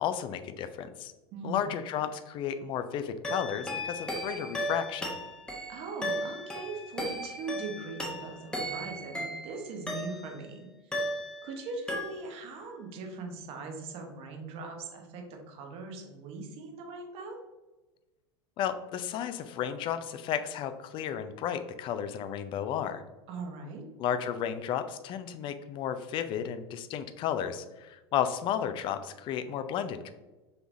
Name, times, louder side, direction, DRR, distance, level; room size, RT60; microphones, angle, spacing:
voice 1, 0.0-1.1 1.4-5.1 18.6-23.0 24.0-30.1, left 9 dB, 35° left, 9 dB, 0.4 m, -33 dB
voice 2, 1.3-1.7 5.7-10.7 11.4-17.4 23.3-23.8, right 3 dB, 45° right, 3 dB, 1.0 m, -40 dB
sound 1, 3.2-10.5 10.9-11.6 11.9-12.5, equal, 5° left, 1.0 m, -36 dB
5.5 x 3.4 x 2.6 m, 1.1 s
figure-of-eight pair, 80°, 14 cm